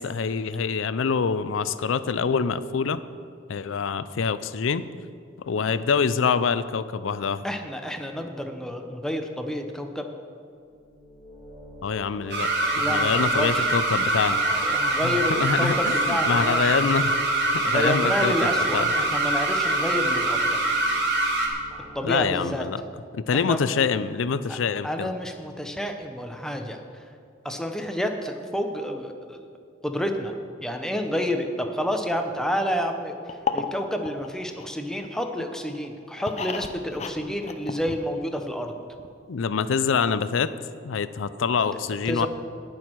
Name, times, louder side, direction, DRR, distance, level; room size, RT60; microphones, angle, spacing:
voice 1, 0.0-3.0 3.5-4.8 5.4-7.4 11.8-12.5 12.8-14.4 15.0-17.2 17.5-18.9 22.0-22.8 23.1-25.1 39.3-40.5 40.8-42.3, left 5 dB, 80° left, 14 dB, 0.5 m, -25 dB
voice 2, 7.4-10.1 12.6-13.7 14.5-16.7 17.6-20.6 21.9-22.7 23.3-23.6 24.5-24.6 24.8-26.8 27.4-29.5 29.8-33.2 33.5-38.7 41.7-41.8 42.1-42.3, equal, 5° left, 4 dB, 0.8 m, -29 dB
sound 1, 10.6-22.2, left 1 dB, 15° right, 1.5 m, -43 dB
sound 2, 12.3-21.5, right 2 dB, 60° right, 1.7 m, -24 dB
sound 3, 33.3-35.3 35.7-38.4 38.7-38.8 39.0-39.1, left 5 dB, 35° left, 0.6 m, -33 dB
18.5 x 6.3 x 4.6 m, 2.3 s
head